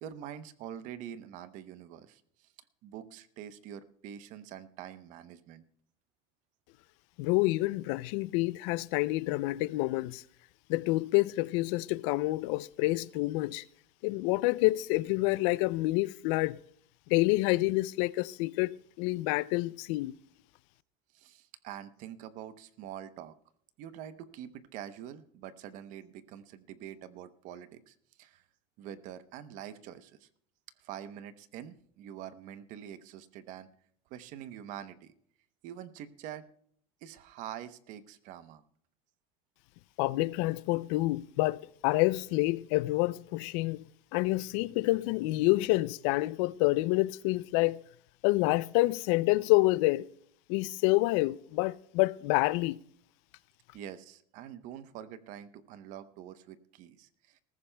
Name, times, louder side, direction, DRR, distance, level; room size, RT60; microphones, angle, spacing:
voice 1, 0.0-2.5 2.8-5.6 21.1-23.3 23.8-28.4 28.8-30.3 30.8-33.7 34.1-35.1 35.6-36.5 37.0-38.6 53.7-57.4, right 10 dB, 55° right, 0.8 m, -45 dB
voice 2, 7.2-10.2 10.7-13.6 14.0-16.6 17.1-18.7 19.0-20.2 40.0-43.8 44.1-47.8 48.2-50.1 50.5-52.8, left 20 dB, 70° left, 0.4 m, -28 dB
19.5 x 14.5 x 2.2 m
cardioid pair, 140°, 16 cm